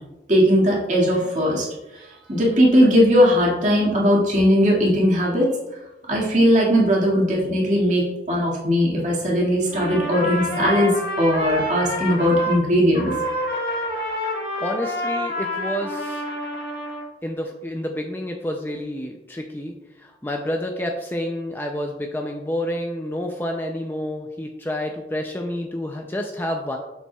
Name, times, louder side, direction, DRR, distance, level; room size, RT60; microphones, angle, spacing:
voice 1, 0.3-1.7 1.9-5.5 6.1-13.1, equal, 40° right, -4 dB, 2.0 m, -19 dB
Trumpet, 9.7-12.6 12.9-17.1, left 1 dB, 55° left, 1.7 m, -28 dB
voice 2, 14.6-16.2 17.2-26.8, left 1 dB, 10° left, 2 dB, 0.4 m, -29 dB
7.1 x 7.1 x 2.3 m, 0.99 s
head